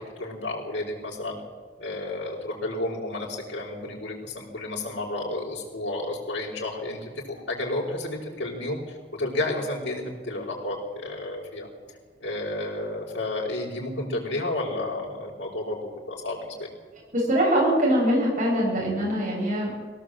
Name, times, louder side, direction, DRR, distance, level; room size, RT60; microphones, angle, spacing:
voice 1, 0.0-1.4 1.8-11.7 12.2-16.7, left 2 dB, 75° left, -7 dB, 4.8 m, -31 dB
voice 2, 17.1-19.8, equal, 45° right, -4 dB, 7.7 m, -23 dB
22.5 x 17.5 x 7.9 m, 1.5 s
head